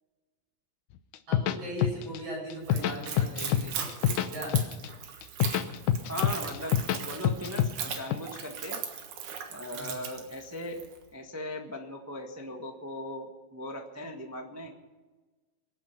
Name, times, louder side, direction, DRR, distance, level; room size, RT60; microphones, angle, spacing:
sound 1, 1.1-2.2 2.5-3.6 3.9-4.9 5.2-7.0 7.2-8.1, left 10 dB, 90° left, 2.3 m, -26 dB
voice 1, 1.3-4.6 9.7-9.9, equal, 50° right, -1 dB, 7.4 m, -38 dB
Splash splatter / Trickle dribble, 2.6-11.0, right 7 dB, 80° right, 3.0 m, -39 dB
voice 2, 6.0-8.8 9.5-14.7, left 1 dB, 20° right, 2 dB, 0.4 m, -39 dB
24.5 x 9.1 x 5.8 m, 1.3 s
omnidirectional pair, 3.4 m